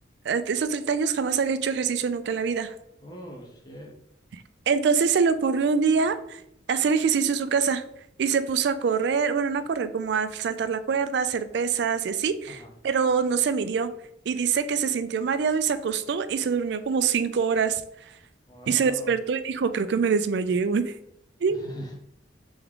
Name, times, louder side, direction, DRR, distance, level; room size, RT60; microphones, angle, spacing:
voice 1, 0.2-2.7 4.7-6.4 6.7-7.8 8.2-12.6 12.8-13.9 14.3-17.8 18.7-20.9 21.4-21.6, right 6 dB, 60° right, 12 dB, 0.3 m, -24 dB
voice 2, 3.0-3.9 12.5-12.7 18.5-19.1 21.5-21.9, equal, 20° left, 1 dB, 0.8 m, -41 dB
3.5 x 3.5 x 3.5 m, 0.78 s
head